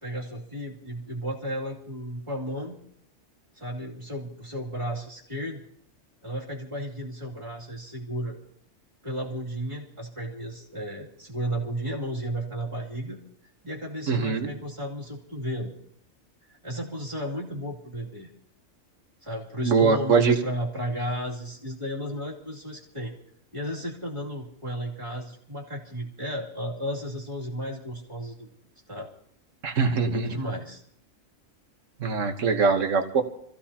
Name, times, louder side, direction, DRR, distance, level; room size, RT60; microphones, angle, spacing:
voice 1, 0.0-2.8 3.5-5.6 6.2-8.4 9.0-13.2 13.6-15.7 16.5-18.3 19.2-23.1 23.5-28.5 28.9-29.1 30.0-30.8, equal, 25° right, -4 dB, 2.8 m, -33 dB
voice 2, 14.1-14.5 19.6-20.4 29.6-30.4 32.0-33.2, right 5 dB, 80° right, 6 dB, 1.6 m, -22 dB
27.0 x 15.5 x 2.9 m, 0.66 s
omnidirectional pair, 1.3 m